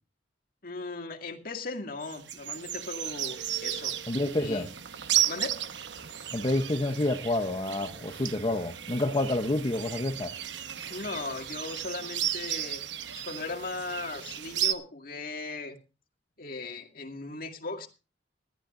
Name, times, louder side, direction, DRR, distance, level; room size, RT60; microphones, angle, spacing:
voice 1, 0.6-4.7 5.3-5.6 10.9-12.9 13.1-15.8 16.4-17.9, left 3 dB, 55° left, 2.1 m, -38 dB
sound 1, 2.0-14.7, right 11 dB, 80° right, 1.0 m, -34 dB
voice 2, 4.1-4.7 6.3-10.3, left 2 dB, 30° left, 0.8 m, -28 dB
20.5 x 14.0 x 2.5 m
head